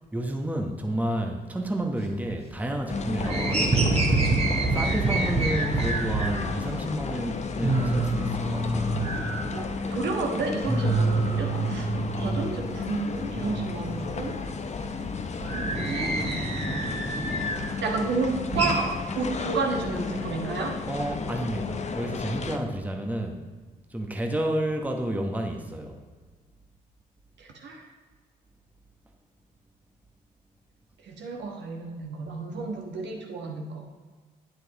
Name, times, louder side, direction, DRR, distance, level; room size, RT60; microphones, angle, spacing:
voice 1, 0.1-4.0 4.7-9.0 20.9-23.4 23.9-26.0, right 1 dB, 5° right, 3 dB, 1.0 m, -30 dB
sound 1, 2.0-2.7 3.0-6.4 6.9-7.0 7.3-7.4 7.6-10.1 10.3-12.9 13.3-17.7 18.1-18.7, right 2 dB, 30° right, 1.7 m, -27 dB
sound 2, 2.9-22.6, left 4 dB, 35° left, 0.7 m, -33 dB
voice 2, 9.1-9.6 9.9-11.9 12.2-14.3 15.4-16.2 17.8-18.9 19.1-20.7 27.4-27.9 31.1-33.8, right 4 dB, 60° right, 1 dB, 1.4 m, -31 dB
9.5 x 7.9 x 3.0 m, 1.4 s
figure-of-eight pair, 45°, 21 cm